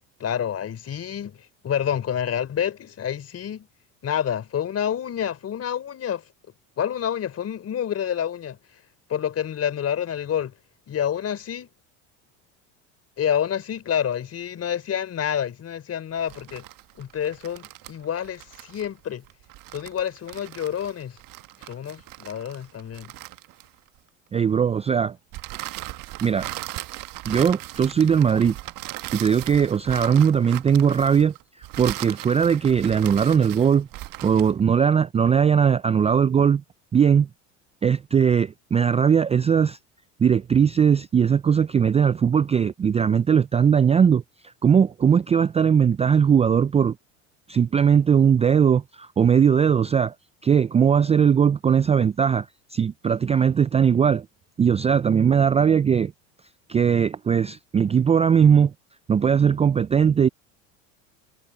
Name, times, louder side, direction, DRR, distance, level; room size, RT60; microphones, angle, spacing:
voice 1, 0.2-1.4 1.6-3.7 4.0-6.2 6.8-8.6 9.1-10.5 10.9-11.7 13.2-16.6 17.0-19.2 19.7-21.2 21.7-23.1, left 9 dB, 40° left, 3.6 m, -28 dB
sound 1, 16.2-24.0 25.3-34.6, right 18 dB, 55° right, 1.4 m, -38 dB
voice 2, 24.3-25.2 26.2-26.5 27.3-28.6 29.1-33.9 34.2-36.6 36.9-37.3 37.8-39.8 40.2-47.0 47.5-50.1 50.4-54.3 54.6-56.1 56.7-58.7 59.1-60.3, right 7 dB, 15° right, 0.4 m, -19 dB
hypercardioid pair, 90°, 39 cm